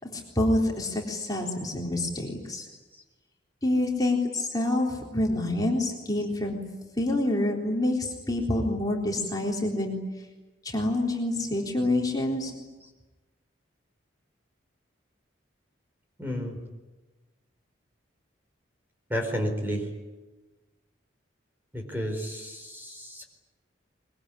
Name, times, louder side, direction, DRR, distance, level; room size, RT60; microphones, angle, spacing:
voice 1, 0.0-2.7 3.6-6.6 7.0-10.0 10.6-12.5, left 1 dB, 20° left, -1 dB, 3.8 m, -27 dB
voice 2, 16.2-16.6 19.1-19.9 21.7-23.2, equal, 10° right, 3 dB, 4.5 m, -31 dB
24.5 x 23.0 x 10.0 m, 1.2 s
head